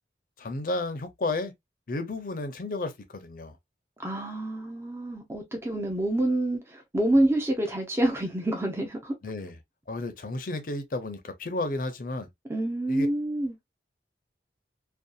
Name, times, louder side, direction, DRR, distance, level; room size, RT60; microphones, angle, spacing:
voice 1, 0.4-1.5 1.9-3.6 9.2-9.5 9.9-12.3 12.9-13.1, left 2 dB, 50° left, 0.5 m, -32 dB
voice 2, 4.0-9.1 12.5-13.6, right 1 dB, 15° right, 0.5 m, -27 dB
2.6 x 2.3 x 2.3 m
head